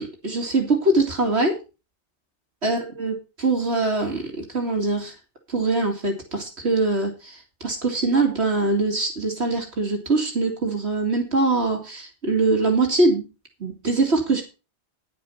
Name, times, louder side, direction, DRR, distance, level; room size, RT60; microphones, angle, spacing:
voice 1, 0.0-1.6 2.6-5.1 5.5-13.2 13.6-14.4, right 2 dB, 70° right, 2 dB, 2.6 m, -23 dB
10.5 x 7.4 x 5.6 m, 0.31 s
omnidirectional pair, 1.2 m